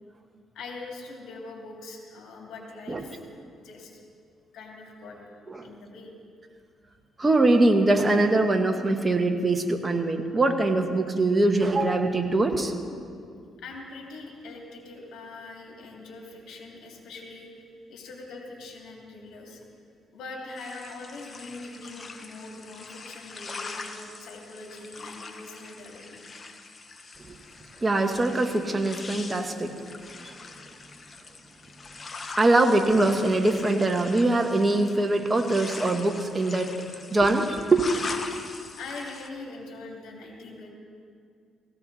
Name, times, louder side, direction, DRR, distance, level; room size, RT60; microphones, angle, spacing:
voice 1, 0.5-3.2 3.6-4.0 4.5-5.2 5.6-6.1 13.6-19.6 20.1-26.4 30.0-30.1 38.8-40.7, left 3 dB, 80° left, -1 dB, 2.9 m, -42 dB
voice 2, 7.2-12.8 27.3-27.4 27.8-29.7 30.2-30.4 32.4-36.7 37.1-37.9, right 2 dB, 25° right, 4 dB, 1.4 m, -23 dB
sound 1, 20.6-39.3, left 4 dB, 35° left, 1.1 m, -42 dB
17.5 x 16.0 x 4.2 m, 2.3 s
cardioid pair, 90°, 0 cm